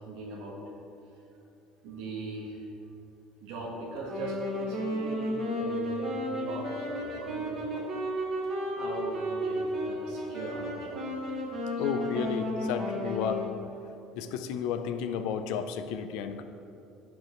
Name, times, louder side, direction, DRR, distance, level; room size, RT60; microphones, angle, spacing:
voice 1, 0.0-0.6 1.8-2.6 3.4-7.8 8.7-11.0 12.1-12.2 13.0-13.1, right 2 dB, 75° right, -4 dB, 1.4 m, -40 dB
Wind instrument woodwind instrument, 4.0-13.7, equal, 35° right, 1.6 m, -33 dB
voice 2, 11.8-13.4 14.2-16.4, left 7 dB, 75° left, 8 dB, 0.6 m, -32 dB
15.0 x 5.4 x 3.1 m, 2.8 s
cardioid pair, 165°, 0 cm